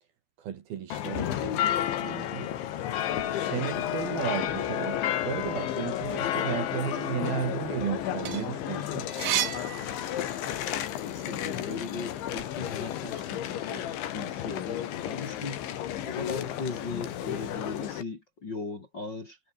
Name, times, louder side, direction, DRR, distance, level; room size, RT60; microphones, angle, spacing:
voice 1, 0.4-1.7 2.0-2.5 3.1-9.1, right 9 dB, 60° right, 3.3 m, -34 dB
sound 1, 0.9-18.0, left 11 dB, 70° left, 4.4 m, -32 dB
sound 2, 8.0-10.7 11.1-12.5, right 13 dB, 85° right, 4.4 m, -33 dB
voice 2, 9.9-15.6 16.0-19.4, left 3 dB, 30° left, 2.5 m, -39 dB
omnidirectional pair, 5.7 m